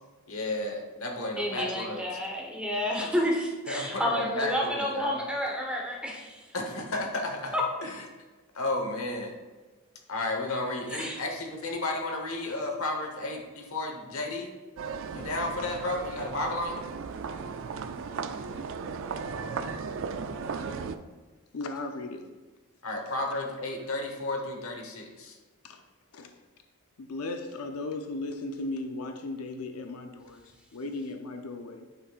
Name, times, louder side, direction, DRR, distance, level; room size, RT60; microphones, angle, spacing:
voice 1, 0.3-2.0 3.7-5.2 6.5-7.5 7.8-8.0 8.5-9.3 10.1-14.5 15.1-16.8 22.8-25.4, left 2 dB, 65° left, 3 dB, 1.1 m, -32 dB
voice 2, 1.4-6.6 7.5-7.6 10.9-11.2, equal, 5° right, -1 dB, 1.0 m, -30 dB
sound 1, 14.8-21.0, right 5 dB, 60° right, 0.4 m, -36 dB
voice 3, 21.5-22.3 25.6-25.8 26.1-26.3 27.0-31.9, left 2 dB, 80° left, 5 dB, 0.6 m, -36 dB
9.7 x 5.8 x 2.4 m, 1.3 s
head